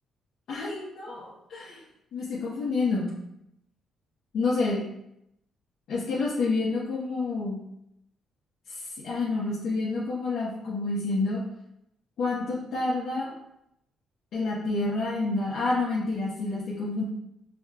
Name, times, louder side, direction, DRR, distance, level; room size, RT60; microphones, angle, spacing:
voice 1, 0.5-1.8 2.1-3.1 4.3-4.8 5.9-7.6 8.7-11.4 12.2-13.3 14.3-17.0, left 3 dB, 70° left, -8 dB, 1.2 m, -28 dB
5.1 x 3.5 x 2.5 m, 0.80 s
cardioid pair, 90°, 0 cm